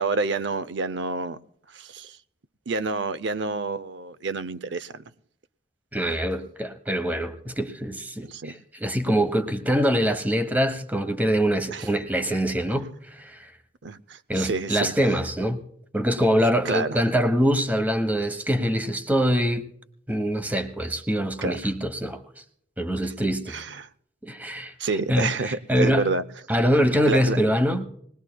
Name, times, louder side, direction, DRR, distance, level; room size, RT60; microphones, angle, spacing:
voice 1, 0.0-1.4 1.7-2.2 2.7-5.0 8.2-8.6 11.7-11.9 13.8-15.1 16.6-17.0 21.4-21.7 23.5-23.9 24.8-26.2 27.1-27.4, right 3 dB, 75° right, 0.6 m, -28 dB
voice 2, 5.9-12.9 13.2-13.4 14.3-15.6 15.9-19.7 20.1-22.2 22.8-23.6 24.2-24.7 25.1-26.1 26.5-27.9, equal, 10° right, 1.1 m, -24 dB
21.0 x 19.5 x 2.3 m
head